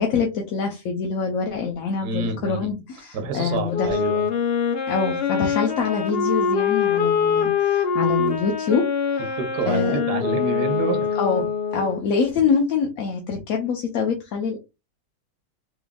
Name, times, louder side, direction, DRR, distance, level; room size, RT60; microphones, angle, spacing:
voice 1, 0.0-4.0 4.9-9.4 9.7-10.0 11.2-11.4 11.7-14.6, left 5 dB, 60° left, 2 dB, 1.0 m, -25 dB
voice 2, 2.0-2.7 3.1-4.2 9.4-11.1, right 4 dB, 65° right, 5 dB, 1.4 m, -28 dB
Wind instrument woodwind instrument, 3.7-12.0, left 6 dB, 85° left, 0.5 m, -24 dB
3.6 x 3.5 x 2.2 m, 0.25 s
omnidirectional pair, 1.9 m